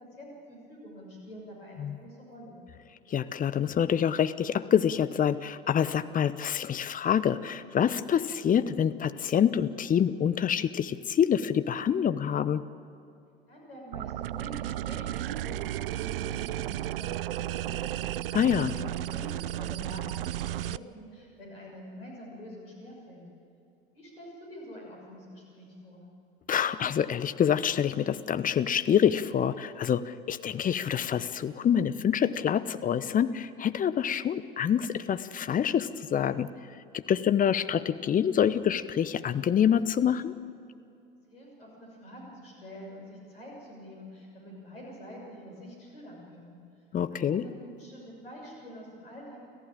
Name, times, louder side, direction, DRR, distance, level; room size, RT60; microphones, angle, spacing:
voice 1, 0.0-2.6 13.5-23.2 23.9-26.0 41.3-46.6 47.1-49.4, equal, 80° left, -2 dB, 6.6 m, -46 dB
voice 2, 3.1-12.6 18.3-18.7 26.5-36.5 36.9-40.3 46.9-47.4, left 8 dB, 30° left, 13 dB, 0.9 m, -26 dB
sound 1, 13.9-20.8, right 13 dB, 70° right, 0.5 m, -33 dB
28.5 x 15.0 x 8.9 m, 2.6 s
figure-of-eight pair, 70°, 29 cm